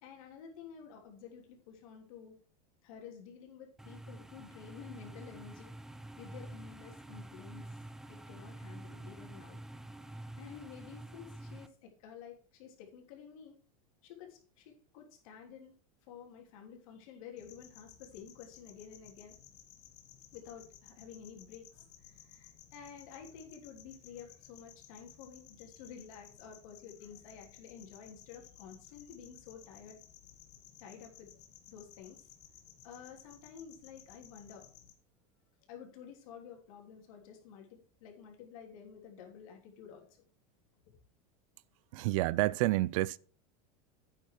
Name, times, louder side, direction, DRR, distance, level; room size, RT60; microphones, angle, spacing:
voice 1, 0.0-2.4 2.8-5.7 6.2-7.6 8.1-9.6 10.4-13.5 14.0-15.7 16.1-19.3 20.3-30.0 30.8-31.3 31.7-32.2 32.8-34.7 35.7-40.2, left 7 dB, 65° left, 3.4 m, -51 dB
sound 1, 3.8-11.7, right 1 dB, ahead, 0.4 m, -48 dB
sound 2, 17.4-34.9, left 10 dB, 40° left, 1.6 m, -57 dB
voice 2, 41.9-43.2, right 18 dB, 65° right, 0.4 m, -29 dB
8.8 x 7.8 x 4.8 m
supercardioid pair, 170°, 19 cm